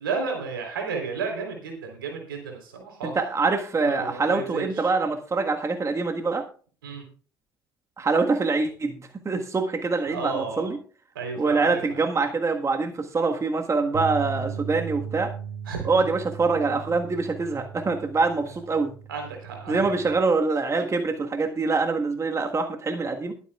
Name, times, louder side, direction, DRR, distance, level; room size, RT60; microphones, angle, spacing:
voice 1, 0.0-3.1 3.8-4.9 6.8-7.0 10.1-10.7 11.1-12.0 15.7-15.9 19.1-19.9, right 5 dB, 80° right, 2 dB, 3.8 m, -32 dB
voice 2, 3.0-6.4 8.0-10.8 11.4-15.3 15.9-18.9 19.7-23.3, right 4 dB, 25° right, 5 dB, 1.5 m, -25 dB
sound 1, 13.9-20.2, right 7 dB, 45° right, 5.1 m, -37 dB
22.0 x 8.4 x 2.4 m, 0.40 s
figure-of-eight pair, 55°, 11 cm